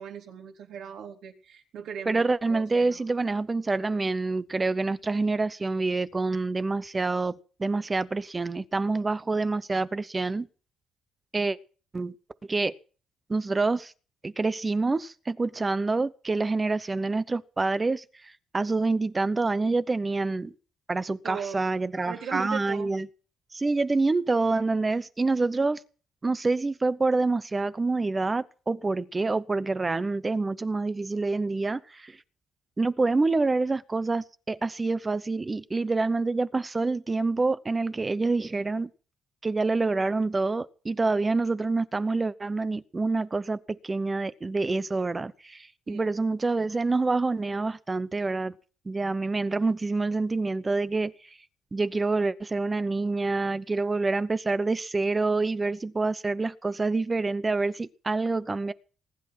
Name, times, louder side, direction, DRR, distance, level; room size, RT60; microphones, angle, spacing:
voice 1, 0.0-3.0 21.2-21.6 22.1-22.9 45.9-46.1, right 7 dB, 65° right, 3.7 m, -38 dB
voice 2, 2.1-7.3 7.6-10.5 11.3-11.6 11.9-12.1 12.5-12.7 13.3-13.9 14.2-20.5 20.9-23.1 23.5-25.8 26.2-32.2 32.8-38.9 39.4-48.5 48.9-51.1 51.7-58.7, right 3 dB, 20° right, 0.8 m, -27 dB
20.0 x 11.0 x 6.0 m
cardioid pair, 145°, 0 cm